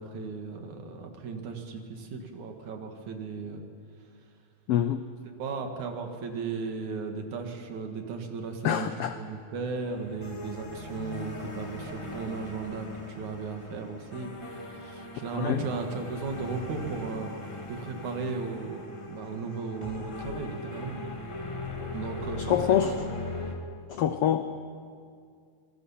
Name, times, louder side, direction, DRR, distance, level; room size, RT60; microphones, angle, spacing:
voice 1, 0.0-3.6 5.4-8.9 9.1-17.3 17.7-18.8 19.1-21.0 21.9-22.8, right 4 dB, 70° right, 4 dB, 3.2 m, -36 dB
voice 2, 4.7-5.0 8.6-9.1 15.3-15.6 22.4-22.9 23.9-24.5, left 10 dB, 85° left, 10 dB, 1.3 m, -25 dB
sound 1, 9.9-23.5, left 2 dB, 15° left, 1.2 m, -40 dB
27.0 x 20.0 x 5.8 m, 2.2 s
omnidirectional pair, 3.5 m